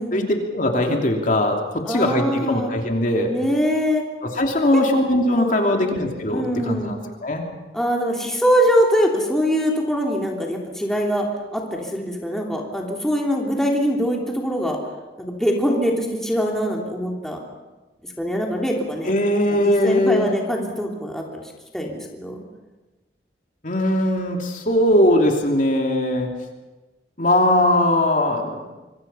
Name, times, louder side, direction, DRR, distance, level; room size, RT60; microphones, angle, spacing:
voice 1, 0.1-1.6 1.9-3.3 4.4-7.0 7.2-7.5 19.1-20.3 23.6-26.3 27.2-28.7, left 1 dB, 45° left, 2 dB, 3.0 m, -20 dB
voice 2, 1.8-2.7 3.3-4.0 4.7-4.8 5.4-5.8 6.3-6.9 7.7-14.8 15.2-17.4 18.2-19.1 19.5-21.4 21.7-22.4, equal, 5° left, -1 dB, 3.1 m, -23 dB
26.0 x 24.5 x 5.7 m, 1.2 s
head